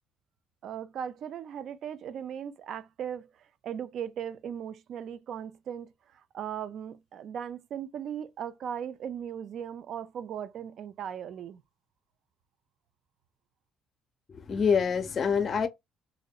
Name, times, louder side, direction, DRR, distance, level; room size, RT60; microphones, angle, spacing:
voice 1, 0.6-11.6, right 8 dB, 60° right, 0.3 m, -38 dB
voice 2, 14.3-15.7, left 6 dB, 40° left, 0.5 m, -26 dB
2.6 x 2.1 x 2.2 m
supercardioid pair, 90°, 0 cm